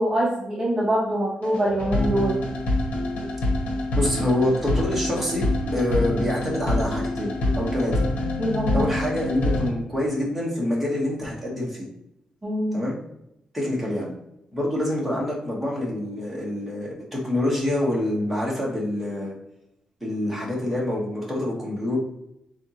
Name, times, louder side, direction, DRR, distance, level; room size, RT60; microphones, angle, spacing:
voice 1, 0.0-2.4 8.4-8.8 12.4-12.8, right 1 dB, 20° right, -4 dB, 0.7 m, -24 dB
sound 1, 1.4-9.7, left 1 dB, 85° left, 0.9 m, -26 dB
voice 2, 3.9-8.1 8.7-11.9 12.7-13.0 13.5-14.1 14.5-19.3 20.0-22.0, left 1 dB, 5° right, -4 dB, 1.1 m, -26 dB
3.7 x 3.4 x 2.8 m, 0.82 s
wide cardioid pair, 170°, 2 cm